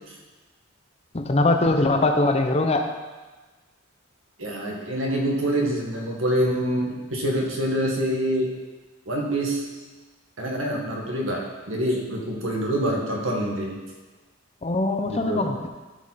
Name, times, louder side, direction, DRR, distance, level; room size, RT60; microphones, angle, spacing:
voice 1, 1.1-2.9 14.6-15.7, left 2 dB, 30° left, 5 dB, 0.7 m, -22 dB
voice 2, 4.4-8.5 9.1-9.7 10.4-13.8 15.1-15.5, right 1 dB, 75° right, -1 dB, 1.8 m, -26 dB
13.0 x 5.3 x 4.1 m, 1.3 s
head